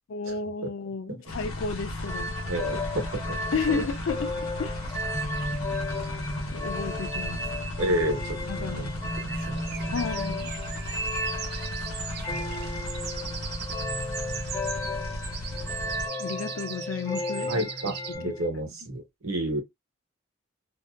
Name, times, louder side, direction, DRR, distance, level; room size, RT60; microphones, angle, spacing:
voice 1, 0.1-2.3 3.5-4.3 4.6-4.8 6.5-7.5 8.4-8.9 9.9-10.5 16.2-17.9 18.2-18.3, left 5 dB, 70° left, 0.4 m, -32 dB
sound 1, 1.3-16.1, left 1 dB, 85° left, 0.9 m, -35 dB
sound 2, 2.0-18.5, left 1 dB, 15° left, 0.5 m, -34 dB
voice 2, 2.4-3.4 3.7-3.8 7.8-8.9 9.2-10.1 12.2-12.4 17.4-19.6, right 1 dB, 80° right, 1.0 m, -31 dB
sound 3, 4.8-6.4 7.0-7.1 7.4-7.5 7.7-18.2, right 8 dB, 50° right, 0.4 m, -41 dB
2.6 x 2.2 x 2.2 m
head